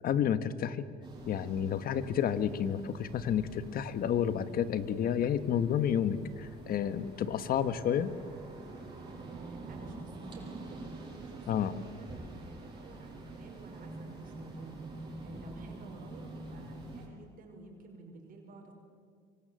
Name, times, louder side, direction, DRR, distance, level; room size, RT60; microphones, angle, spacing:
voice 1, 0.0-0.8 1.2-8.1 11.5-11.7, left 9 dB, 60° left, 13 dB, 1.4 m, -30 dB
sound 1, 1.0-17.1, right 2 dB, 25° right, 6.3 m, -46 dB
voice 2, 9.2-18.7, right 2 dB, 55° right, 1 dB, 5.4 m, -53 dB
25.5 x 24.0 x 7.7 m, 2.1 s
cardioid pair, 110°, 17 cm